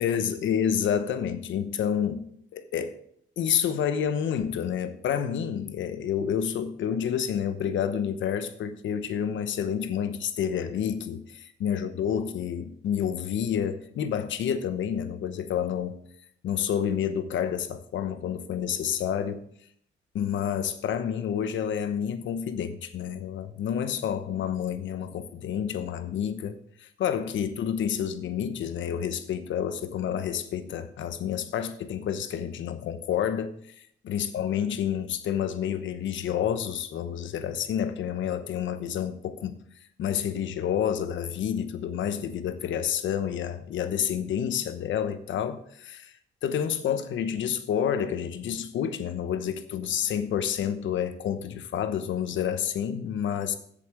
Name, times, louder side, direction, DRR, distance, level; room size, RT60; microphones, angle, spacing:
voice 1, 0.0-2.3 2.5-3.0 3.4-16.0 16.4-19.4 20.1-26.5 26.8-33.7 34.1-39.6 40.0-46.1 46.4-53.6, left 8 dB, 70° left, 1.0 m, -29 dB
7.7 x 7.3 x 6.5 m
cardioid pair, 90°, 20 cm